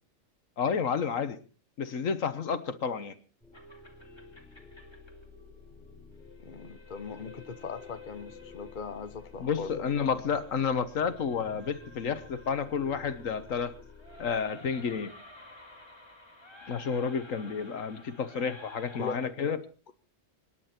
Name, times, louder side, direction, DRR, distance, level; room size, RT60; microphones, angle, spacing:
voice 1, 0.6-1.4 1.8-3.2 9.4-13.7 14.2-15.1 16.7-19.6, left 6 dB, 80° left, 12 dB, 1.6 m, -30 dB
sound 1, 3.4-14.4, left 4 dB, ahead, 5.0 m, -52 dB
sound 2, 3.5-19.3, left 3 dB, 20° left, 2.5 m, -52 dB
voice 2, 6.4-9.8 18.9-19.3, left 5 dB, 40° left, 10 dB, 1.2 m, -40 dB
25.5 x 10.5 x 4.4 m, 0.38 s
omnidirectional pair, 1.4 m